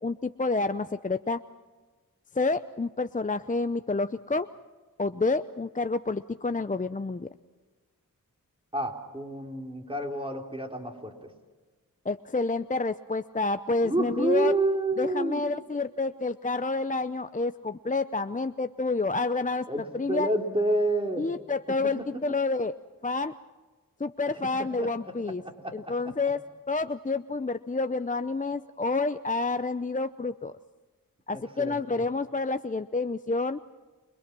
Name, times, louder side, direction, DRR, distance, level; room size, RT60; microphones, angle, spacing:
voice 1, 0.0-1.4 2.3-4.5 5.0-7.3 12.1-14.5 15.0-19.7 19.9-20.3 21.2-22.7 23.0-23.3 24.0-25.4 25.7-26.4 26.7-30.5 31.3-33.6, left 3 dB, 25° left, 11 dB, 0.7 m, -29 dB
voice 2, 8.7-11.3 13.8-15.4 19.7-19.8 20.1-21.3 24.8-25.1 25.4-26.1 31.3-31.8, right 1 dB, 15° right, 2 dB, 3.9 m, -29 dB
29.0 x 22.5 x 6.2 m, 1.3 s
cardioid pair, 40°, 34 cm